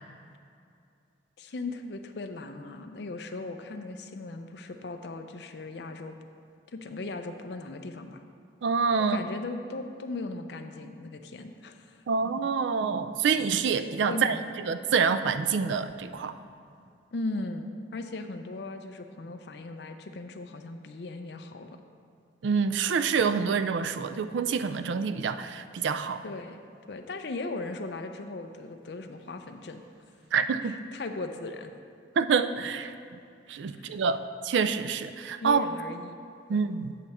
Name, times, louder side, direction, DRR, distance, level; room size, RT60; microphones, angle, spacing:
voice 1, 1.4-6.2 6.7-8.2 9.0-12.0 14.1-14.4 17.1-21.7 26.2-26.6 26.9-29.8 30.6-31.7 33.7-34.0 35.4-36.2 36.5-36.6, left 2 dB, 60° left, 7 dB, 0.5 m, -38 dB
voice 2, 8.6-9.2 12.1-14.4 14.7-16.4 22.4-26.2 30.3-30.7 32.2-32.9 33.5-34.2 34.4-35.7 36.5-36.9, right 5 dB, 75° right, 11 dB, 0.4 m, -26 dB
8.3 x 6.7 x 4.2 m, 2.4 s
head